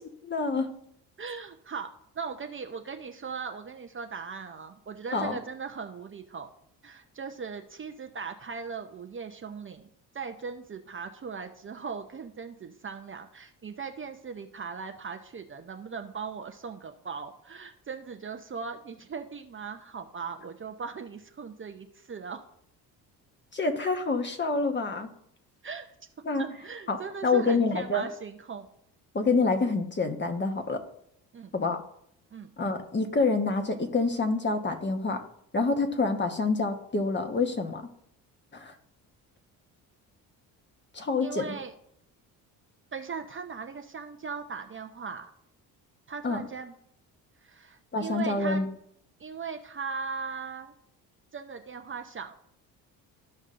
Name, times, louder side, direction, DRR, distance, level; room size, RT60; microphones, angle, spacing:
voice 1, 0.3-0.7 5.1-5.4 23.5-25.1 26.2-26.4 26.9-27.0 27.2-28.1 29.1-30.8 31.5-31.8 32.6-35.2 35.5-37.8 38.5-38.7 40.9-41.4 46.2-46.4 47.9-48.7, left 3 dB, 25° left, 5 dB, 1.2 m, -27 dB
voice 2, 1.2-6.5 6.8-9.9 10.1-22.4 25.6-25.9 26.4-28.7 31.3-31.5 32.3-32.5 41.2-41.7 42.9-45.3 46.1-46.7 47.4-48.6 49.2-50.7 51.3-52.4, right 5 dB, 30° right, 5 dB, 0.6 m, -39 dB
14.0 x 5.2 x 2.6 m, 0.71 s
cardioid pair, 85°, 40 cm